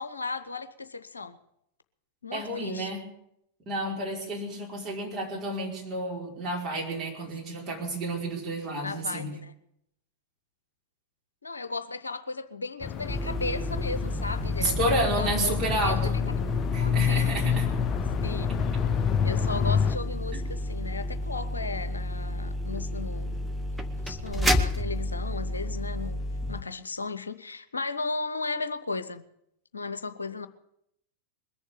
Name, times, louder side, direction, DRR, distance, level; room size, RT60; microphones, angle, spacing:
voice 1, 0.0-1.4 2.2-3.0 6.7-7.1 8.8-9.4 11.4-16.2 16.8-17.6 18.2-18.6 19.2-23.5 24.0-26.2 26.5-29.2 29.7-30.5, left 3 dB, 75° left, 0.8 m, -36 dB
voice 2, 2.3-3.0 3.6-9.3 14.6-16.1 16.7-17.7 20.3-20.4, right 1 dB, 30° right, 5.1 m, -30 dB
sound 1, 12.8-20.0, left 8 dB, 30° left, 0.6 m, -28 dB
sound 2, 13.1-26.6, left 1 dB, ahead, 1.1 m, -31 dB
21.5 x 7.3 x 8.6 m
figure-of-eight pair, 90°, 0 cm